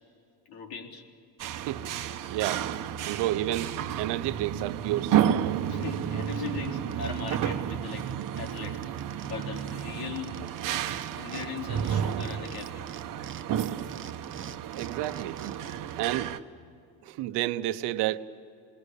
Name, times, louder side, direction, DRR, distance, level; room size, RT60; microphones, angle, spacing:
voice 1, 0.5-1.1 5.7-8.1 8.3-8.8 9.2-10.5 11.1-12.9, left 5 dB, 65° left, 3.9 m, -39 dB
sound 1, 1.4-16.4, right 10 dB, 55° right, 1.1 m, -31 dB
voice 2, 1.7-2.7 3.0-5.4 14.8-15.5 16.0-16.3 17.0-18.2, right 14 dB, 85° right, 1.1 m, -31 dB
sound 2, 5.5-7.4 7.7-7.8 8.0-11.5 11.8-16.0, right 8 dB, 30° right, 0.9 m, -46 dB
28.0 x 21.0 x 8.4 m
cardioid pair, 115°, 40 cm